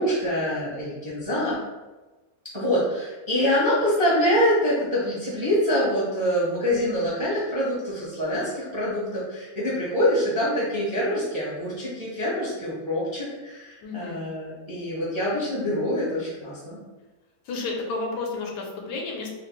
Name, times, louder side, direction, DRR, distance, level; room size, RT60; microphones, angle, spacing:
voice 1, 0.0-1.6 2.5-16.8, equal, 35° right, -8 dB, 0.4 m, -25 dB
voice 2, 13.8-14.2 17.5-19.4, left 3 dB, 85° left, 0 dB, 1.3 m, -31 dB
3.1 x 2.5 x 3.0 m, 1.2 s
omnidirectional pair, 1.8 m